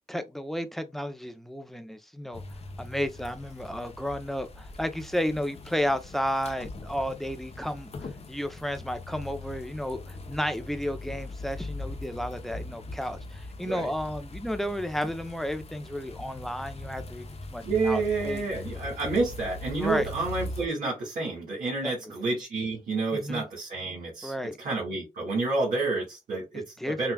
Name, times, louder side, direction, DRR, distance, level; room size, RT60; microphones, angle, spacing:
voice 1, 0.1-2.4 2.8-18.4 19.8-20.1 21.8-22.1 23.1-23.4 24.2-24.6 26.5-27.0, equal, ahead, 0.7 m, -32 dB
sound 1, 2.3-20.7, left 2 dB, 45° left, 0.8 m, -41 dB
voice 2, 17.6-27.1, right 3 dB, 75° right, 2.0 m, -29 dB
5.6 x 2.4 x 2.3 m
cardioid pair, 60°, 15 cm